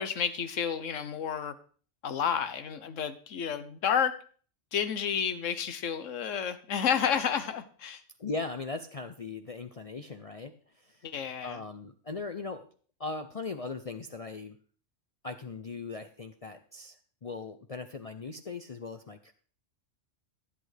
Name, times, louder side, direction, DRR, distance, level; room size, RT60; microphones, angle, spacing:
voice 1, 0.0-1.5 2.0-4.2 4.7-8.0 11.0-11.6, left 7 dB, 80° left, 11 dB, 1.3 m, -30 dB
voice 2, 8.2-11.1 11.4-12.7 13.0-14.6 15.2-19.3, left 3 dB, 45° left, 8 dB, 0.5 m, -39 dB
15.0 x 8.6 x 3.3 m, 0.43 s
omnidirectional pair, 1.3 m